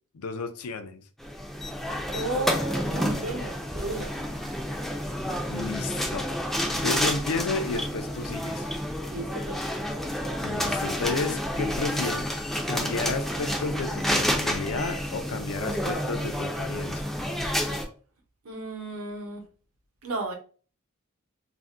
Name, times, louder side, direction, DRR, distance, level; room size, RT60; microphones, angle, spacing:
voice 1, 0.1-1.0 5.5-6.3 6.7-8.7 10.4-12.4 12.7-17.1, left 4 dB, 75° left, 8 dB, 0.4 m, -32 dB
sound 1, 1.2-17.8, equal, ahead, 0.3 m, -29 dB
voice 2, 2.1-4.1 9.0-9.7 18.4-19.4 20.0-20.3, right 2 dB, 75° right, 3 dB, 0.8 m, -33 dB
2.5 x 2.1 x 3.4 m, 0.39 s
head